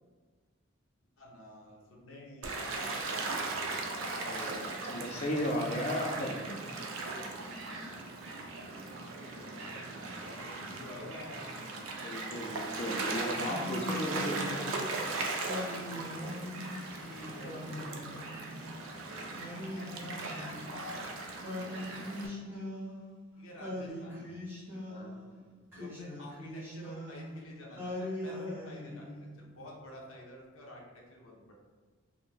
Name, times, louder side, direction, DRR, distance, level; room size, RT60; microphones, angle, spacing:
voice 1, 1.2-3.7 8.7-11.5 16.8-18.1 19.7-21.1 21.6-22.2 23.4-24.4 25.6-29.1 29.4-31.5, left 1 dB, 90° left, -3 dB, 0.6 m, -50 dB
Gull seagull / Waves surf, 2.4-22.3, right 3 dB, 75° right, 0.4 m, -38 dB
voice 2, 4.2-6.6 12.0-14.6 24.9-25.1, equal, 30° left, 1 dB, 0.3 m, -35 dB
Singing, 13.3-14.8 15.4-16.8 17.4-18.7 19.3-20.9 21.4-23.2 23.6-25.2 25.7-27.4 27.8-29.4, left 1 dB, 10° right, 0.6 m, -41 dB
2.5 x 2.1 x 3.1 m, 1.4 s
head